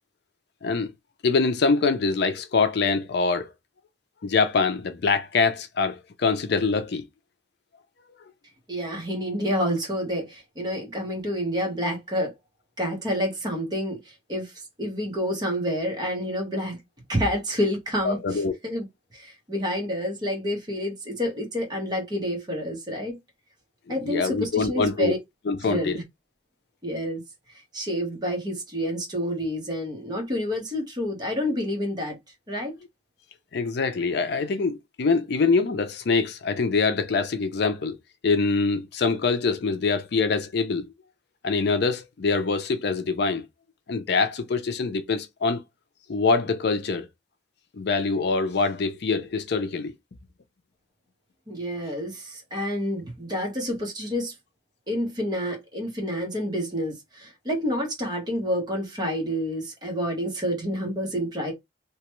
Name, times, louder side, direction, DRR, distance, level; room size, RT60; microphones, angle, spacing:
voice 1, 1.2-3.5 4.2-7.1 18.0-18.5 24.0-25.2 25.5-25.9 33.5-38.0 38.2-40.9 41.4-43.4 43.9-45.6 46.1-47.1 47.7-49.9, left 4 dB, 65° left, 0.5 m, -24 dB
voice 2, 8.7-12.3 12.8-16.8 17.1-18.9 19.1-23.2 23.9-25.2 25.6-26.0 26.8-27.2 27.7-32.2 32.5-32.8 51.5-54.3 54.9-61.5, equal, 25° right, 1.1 m, -28 dB
2.9 x 2.3 x 3.0 m
head